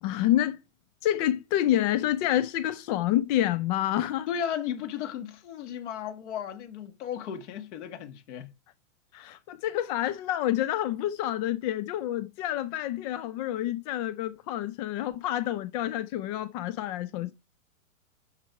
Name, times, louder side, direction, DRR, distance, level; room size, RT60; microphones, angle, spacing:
voice 1, 0.0-0.6 1.0-4.3 9.1-17.3, left 13 dB, 30° left, 0.5 m, -28 dB
voice 2, 4.3-8.5 9.2-9.4, left 9 dB, 55° left, 1.7 m, -35 dB
11.5 x 4.6 x 4.6 m
hypercardioid pair, 110°, 41 cm